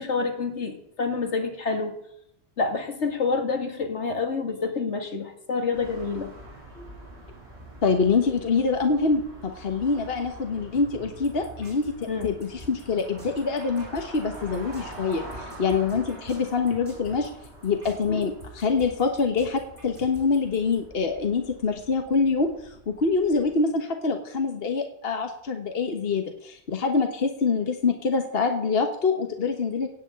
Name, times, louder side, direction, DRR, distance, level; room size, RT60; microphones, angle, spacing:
voice 1, 0.0-1.9 2.6-6.3 6.8-6.9 12.1-12.4 18.1-18.2, left 4 dB, 80° left, 5 dB, 2.2 m, -28 dB
sound 1, 5.7-23.5, right 1 dB, 70° right, 5.8 m, -45 dB
voice 2, 7.8-17.3 17.6-29.9, left 4 dB, 60° left, 5 dB, 1.5 m, -25 dB
sound 2, 11.2-20.8, equal, 50° right, 6.6 m, -46 dB
17.0 x 6.4 x 8.6 m, 0.75 s
omnidirectional pair, 1.2 m